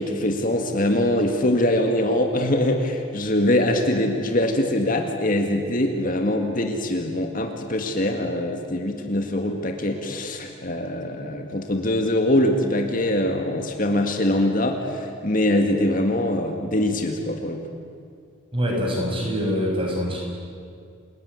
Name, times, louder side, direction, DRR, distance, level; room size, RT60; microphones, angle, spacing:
voice 1, 0.0-17.8, left 1 dB, 40° left, 3 dB, 2.0 m, -23 dB
voice 2, 18.5-20.2, equal, 25° right, -1 dB, 6.7 m, -24 dB
29.0 x 20.0 x 9.7 m, 2.3 s
head